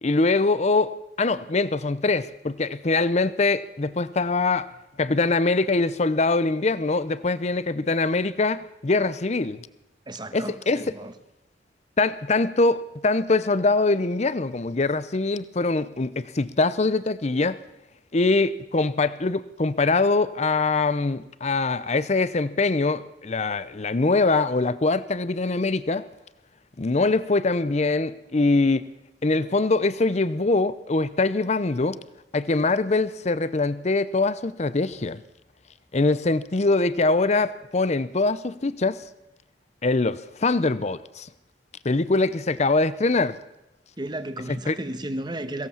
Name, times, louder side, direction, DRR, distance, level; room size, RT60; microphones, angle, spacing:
voice 1, 0.0-4.7 5.0-9.7 10.3-10.9 12.0-17.6 18.1-26.1 26.8-28.8 29.2-32.0 32.3-35.2 35.9-39.0 39.8-41.3 41.8-43.4 44.5-44.8, left 3 dB, 40° left, 0.7 m, -23 dB
voice 2, 10.1-11.1 44.0-45.7, right 1 dB, 25° right, 1.3 m, -33 dB
23.0 x 16.5 x 7.3 m
head